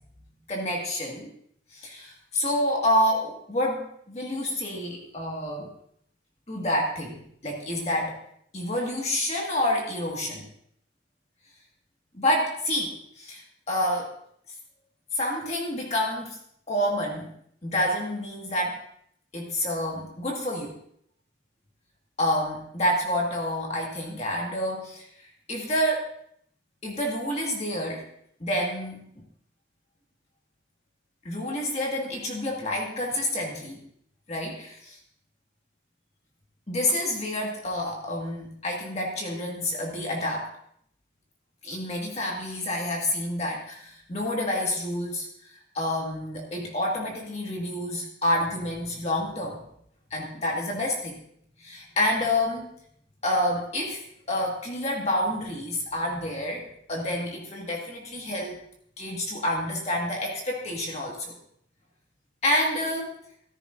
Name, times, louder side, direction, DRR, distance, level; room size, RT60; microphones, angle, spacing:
voice 1, 0.5-1.3 1.7-5.7 6.5-8.2 8.5-10.5 12.1-13.4 13.7-14.1 15.1-16.4 16.7-17.3 17.6-18.8 19.3-20.7 22.2-25.1 25.5-26.1 26.8-28.1 28.4-29.1 31.3-33.8 34.3-35.0 36.7-40.5 41.6-49.6 50.1-51.2 51.6-52.7 53.2-54.0 54.3-58.6 59.0-61.4 62.4-63.1, left 1 dB, 35° left, -1 dB, 1.8 m, -28 dB
15.0 x 13.5 x 2.6 m, 0.68 s
head